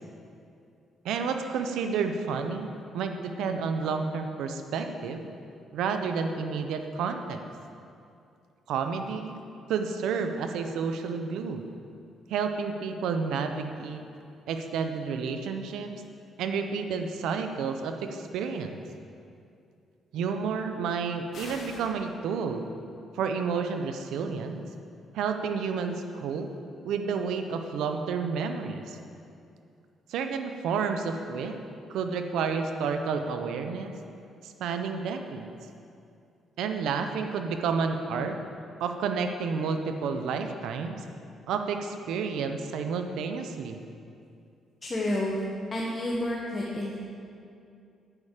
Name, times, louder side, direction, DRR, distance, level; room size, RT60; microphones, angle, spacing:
voice 1, 1.0-5.3 5.7-7.4 8.7-9.4 9.7-11.6 12.3-14.0 14.5-15.9 16.4-18.8 20.1-22.7 23.1-24.6 25.1-26.5 26.8-29.0 30.1-31.6 31.9-34.0 34.4-35.5 36.6-38.4 38.8-41.0 41.5-43.8, right 5 dB, 85° right, 6 dB, 0.7 m, -30 dB
sound 1, 21.3-21.9, left 2 dB, 65° left, 2.8 m, -42 dB
voice 2, 44.8-45.4 45.7-47.0, left 1 dB, 25° left, -4 dB, 1.5 m, -30 dB
11.0 x 8.7 x 5.0 m, 2.5 s
cardioid pair, 90°, 0 cm